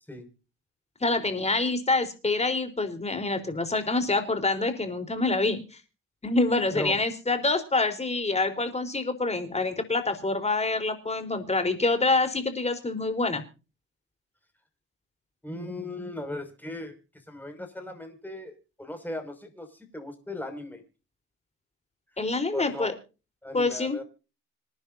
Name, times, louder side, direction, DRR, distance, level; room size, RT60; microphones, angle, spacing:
voice 1, 1.0-5.6 6.2-13.4 22.2-22.9 23.5-24.0, left 3 dB, 20° left, 8 dB, 3.8 m, -26 dB
voice 2, 15.4-17.0 17.3-20.8 22.5-22.9 23.4-24.0, left 1 dB, 5° left, 5 dB, 5.9 m, -37 dB
26.5 x 10.5 x 2.7 m, 0.33 s
cardioid pair, 90°, 30 cm